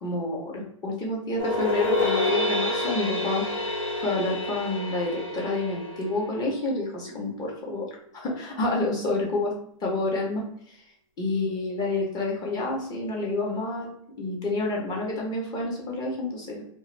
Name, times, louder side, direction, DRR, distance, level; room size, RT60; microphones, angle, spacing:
voice 1, 0.0-3.4 4.0-7.8 8.1-9.5 9.8-10.8 11.2-16.6, left 2 dB, 25° left, -2 dB, 0.8 m, -29 dB
sound 1, 1.4-6.6, left 2 dB, 75° left, 1.2 m, -28 dB
2.2 x 2.1 x 3.1 m, 0.69 s
hypercardioid pair, 125°, 17 cm